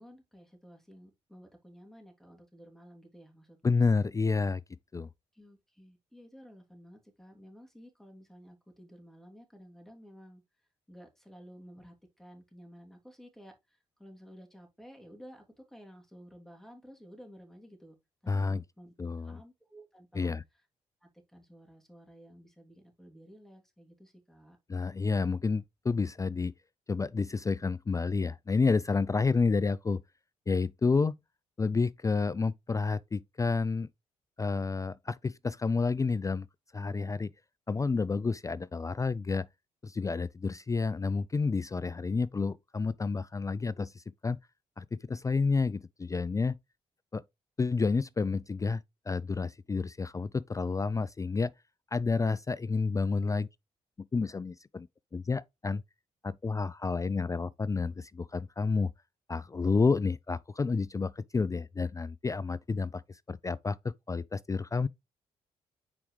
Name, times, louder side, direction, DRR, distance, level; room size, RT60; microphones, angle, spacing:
voice 1, 0.0-3.8 5.3-10.4 10.9-18.0 18.2-20.3 21.0-24.6 30.8-31.0 53.1-53.4, equal, ahead, 3.1 m, -53 dB
voice 2, 3.6-4.6 4.9-5.1 18.3-18.6 19.0-19.4 20.1-20.4 24.7-26.5 26.9-30.0 30.5-31.1 31.6-33.9 34.4-36.5 36.7-37.3 37.7-39.5 39.8-44.4 44.8-46.6 47.1-47.2 47.6-51.5 51.9-53.5 54.0-54.9 55.1-55.8 56.2-58.9 59.3-64.9, left 4 dB, 20° left, 0.3 m, -30 dB
9.0 x 4.8 x 3.3 m
hypercardioid pair, 45°, 15 cm